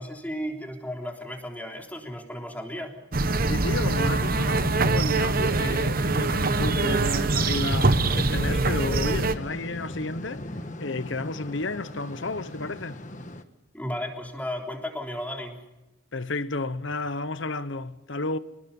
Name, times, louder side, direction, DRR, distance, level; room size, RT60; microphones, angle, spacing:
voice 1, 0.0-3.0 13.7-15.7, equal, 10° left, 3.5 m, -34 dB
sound 1, 3.1-9.3, right 3 dB, 45° right, 1.0 m, -24 dB
sound 2, 3.2-13.4, left 1 dB, 40° left, 1.4 m, -39 dB
voice 2, 3.4-10.4 10.8-13.0 16.1-18.4, left 3 dB, 70° left, 1.0 m, -32 dB
26.5 x 20.0 x 5.5 m
head